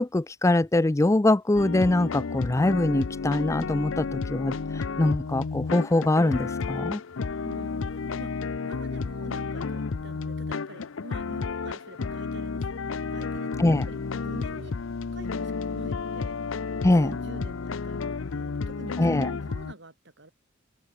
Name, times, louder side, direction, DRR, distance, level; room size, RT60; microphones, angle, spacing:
voice 1, 0.0-7.0 13.6-13.9 16.8-17.1 19.0-19.3, left 2 dB, 15° left, 0.4 m, -23 dB
sound 1, 1.6-19.7, left 4 dB, 70° left, 0.6 m, -32 dB
voice 2, 7.4-14.8 15.1-16.4 17.0-20.3, right 1 dB, 60° right, 4.8 m, -47 dB
head